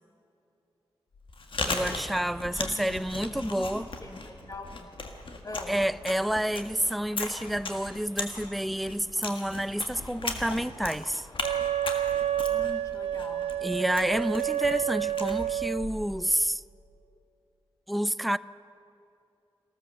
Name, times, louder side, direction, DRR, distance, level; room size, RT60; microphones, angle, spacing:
Chewing mastication, 1.1-16.2, left 3 dB, 55° left, 1.7 m, -38 dB
voice 1, 1.7-3.9 5.7-11.3 13.6-16.6 17.9-18.4, right 1 dB, ahead, 0.3 m, -29 dB
voice 2, 2.4-4.9 5.4-5.8 12.5-13.5, left 2 dB, 35° left, 1.8 m, -43 dB
Wind instrument woodwind instrument, 11.4-15.9, right 11 dB, 80° right, 0.4 m, -29 dB
16.0 x 13.5 x 6.7 m
cardioid pair, 45°, 10 cm